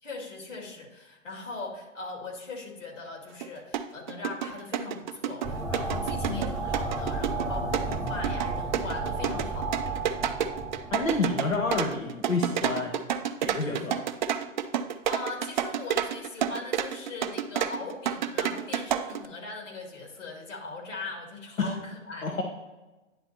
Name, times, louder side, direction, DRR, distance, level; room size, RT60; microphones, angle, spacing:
voice 1, 0.0-10.1 14.7-14.8 15.1-22.4, left 3 dB, 70° left, 1 dB, 2.2 m, -40 dB
sound 1, 3.4-3.5 3.7-19.3, right 9 dB, 40° right, 0.4 m, -29 dB
sound 2, 5.4-11.8, right 2 dB, ahead, 0.8 m, -33 dB
voice 2, 10.9-13.0 13.4-14.0 21.6-21.7 22.2-22.4, left 3 dB, 85° left, 1 dB, 1.0 m, -29 dB
9.9 x 3.9 x 4.3 m, 1.1 s
figure-of-eight pair, 115°, 39 cm